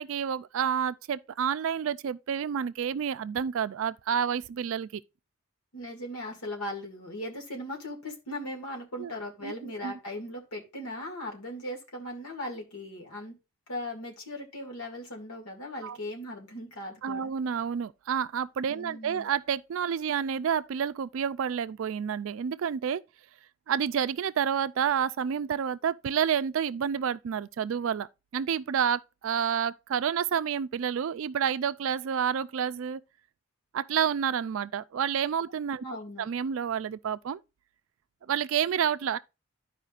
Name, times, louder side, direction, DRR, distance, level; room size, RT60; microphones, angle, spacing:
voice 1, 0.0-5.0 9.0-9.1 9.4-9.9 15.8-16.0 17.0-23.0 23.7-33.0 33.7-35.8 36.2-37.4 38.3-39.2, right 8 dB, 65° right, 0.3 m, -29 dB
voice 2, 5.7-13.3 13.7-17.3 18.7-19.3 35.8-36.3, left 1 dB, 90° left, 2.1 m, -38 dB
13.0 x 4.9 x 2.4 m
head